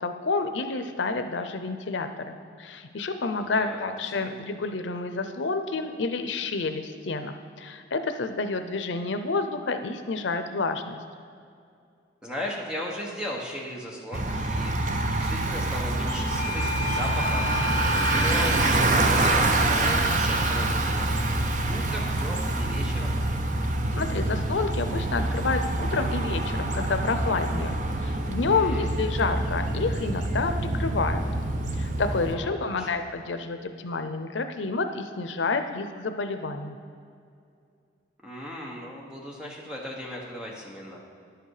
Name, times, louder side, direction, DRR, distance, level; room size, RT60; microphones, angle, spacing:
voice 1, 0.0-11.0 24.0-31.2 31.8-36.8, left 3 dB, 90° left, 8 dB, 0.6 m, -29 dB
voice 2, 3.4-3.9 4.2-4.6 12.2-17.5 18.1-21.3 21.6-23.2 28.5-28.9 32.3-33.0 38.2-41.1, equal, 5° right, -3 dB, 1.4 m, -37 dB
Bicycle, 14.1-32.4, right 2 dB, 40° right, 0.7 m, -26 dB
Doorbell, 16.1-22.5, left 3 dB, 10° left, 2.3 m, -35 dB
10.5 x 8.0 x 4.9 m, 2.4 s
head